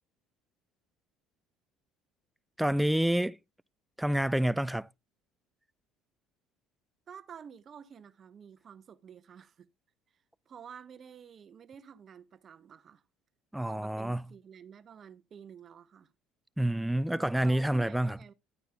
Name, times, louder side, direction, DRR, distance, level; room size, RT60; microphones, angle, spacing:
voice 1, 2.6-3.4 4.0-4.9 13.5-14.2 16.6-18.2, right 1 dB, 5° right, 0.4 m, -28 dB
voice 2, 7.1-9.7 10.1-13.0 13.6-16.1 17.1-18.3, right 7 dB, 45° right, 0.9 m, -50 dB
11.0 x 9.1 x 2.2 m
hypercardioid pair, 70°, 0 cm